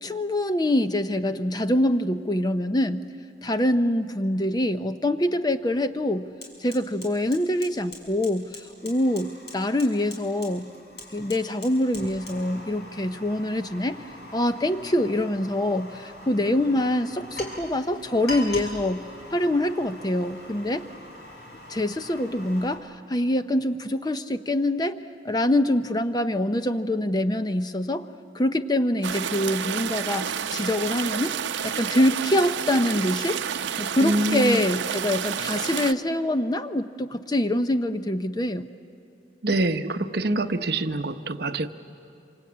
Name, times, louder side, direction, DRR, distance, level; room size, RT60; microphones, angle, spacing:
voice 1, 0.0-3.1 3.4-6.3 6.6-10.7 11.1-14.0 14.3-19.0 19.3-20.8 21.7-25.0 25.2-28.1 28.3-31.3 31.6-33.4 33.8-38.7, left 1 dB, 20° left, 10 dB, 0.6 m, -25 dB
Fire, 5.3-5.4 5.7-22.8, left 2 dB, 60° left, 5.1 m, -42 dB
sound 1, 29.0-35.9, right 8 dB, 85° right, 0.6 m, -30 dB
voice 2, 34.0-34.6 39.4-41.7, right 1 dB, 60° right, 9 dB, 0.9 m, -25 dB
26.5 x 25.5 x 8.6 m, 2.6 s
head